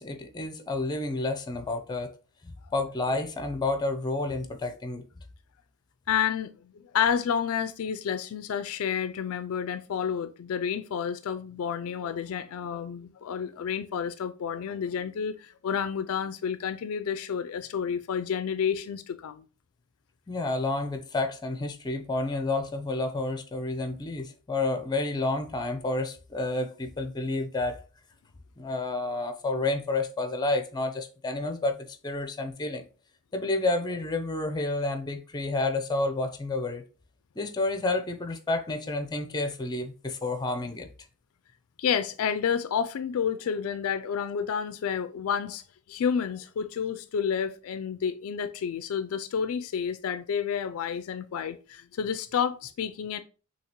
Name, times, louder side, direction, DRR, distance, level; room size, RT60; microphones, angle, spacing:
voice 1, 0.0-2.2 2.4-5.0 20.3-27.8 28.6-32.8 33.3-36.8 37.4-40.9, left 2 dB, 20° left, 0.6 m, -30 dB
voice 2, 6.1-19.4 41.8-53.2, left 7 dB, 70° left, 0.3 m, -30 dB
6.4 x 2.9 x 2.9 m
head